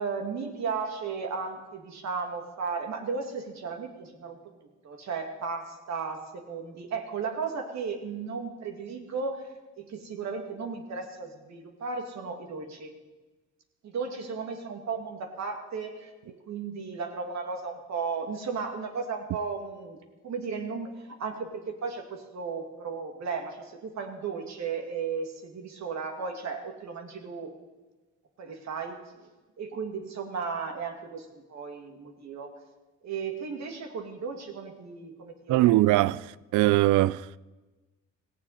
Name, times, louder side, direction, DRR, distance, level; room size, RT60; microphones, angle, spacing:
voice 1, 0.0-4.4 4.8-12.9 13.8-27.5 28.4-29.3 29.6-32.5 33.0-36.0, right 5 dB, 65° right, 2.6 m, -35 dB
voice 2, 35.5-37.4, right 17 dB, 85° right, 0.5 m, -22 dB
17.5 x 16.0 x 4.3 m
cardioid pair, 90°, 30 cm